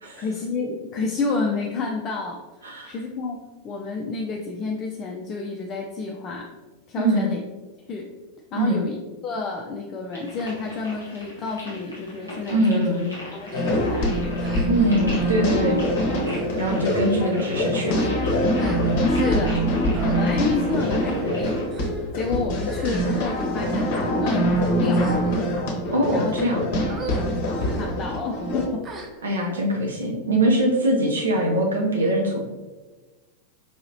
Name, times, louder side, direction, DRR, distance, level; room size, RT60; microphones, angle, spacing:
voice 1, 0.2-3.4 3.6-6.5 6.9-7.4 7.9-8.1 8.5-9.0 9.2-12.8 13.3-14.6 17.3-17.4 19.0-19.6 20.2-21.7 22.1-25.1 26.1-26.4 27.1-28.9, left 4 dB, 30° left, 0 dB, 0.4 m, -30 dB
voice 2, 2.6-3.0 7.0-7.3 8.5-8.8 12.5-13.1 14.7-15.8 16.6-18.1 25.9-26.6 29.2-32.4, right 1 dB, 70° right, 0 dB, 0.6 m, -22 dB
sound 1, 10.1-21.6, equal, 90° right, 1.3 m, -39 dB
sound 2, 13.5-28.7, equal, 50° left, 0.8 m, -24 dB
sound 3, 13.5-13.7 14.4-14.9 15.2-15.5 16.2-16.5 17.2-17.3 17.7-19.7 19.9-20.2 21.0-21.3 21.7-22.1 22.6-23.4 24.1-24.4 24.9-25.6 26.2-26.4 26.9-27.3 27.6-27.8 28.8-29.5, right 2 dB, 25° right, 0.6 m, -37 dB
4.7 x 2.8 x 2.8 m, 1.2 s
figure-of-eight pair, 90°, 0 cm